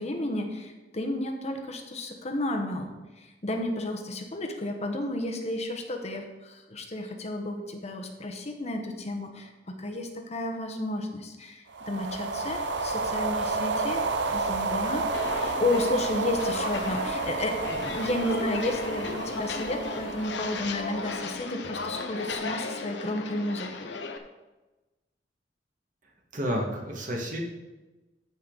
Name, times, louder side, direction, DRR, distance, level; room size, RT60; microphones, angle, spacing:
voice 1, 0.0-15.1 15.3-24.0, left 1 dB, 40° left, 4 dB, 1.0 m, -32 dB
sound 1, 11.7-21.2, right 3 dB, 75° right, 0.7 m, -31 dB
Walk footsteps, 15.1-24.2, left 3 dB, 80° left, 0.9 m, -36 dB
voice 2, 26.3-27.4, equal, 50° right, -1 dB, 1.9 m, -30 dB
14.0 x 5.2 x 4.0 m, 1.1 s
head